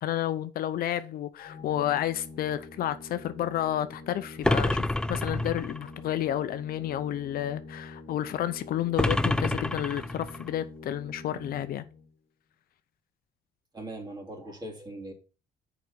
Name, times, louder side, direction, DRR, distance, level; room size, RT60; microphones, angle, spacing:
voice 1, 0.0-11.9, left 12 dB, 60° left, 0.6 m, -31 dB
Organ, 1.4-12.1, left 2 dB, 40° left, 1.5 m, -46 dB
sound 1, 4.4-5.9 9.0-10.5, left 1 dB, 5° left, 0.4 m, -27 dB
voice 2, 13.7-15.1, right 1 dB, 25° right, 2.7 m, -40 dB
6.6 x 5.0 x 6.7 m
cardioid pair, 110°, 17 cm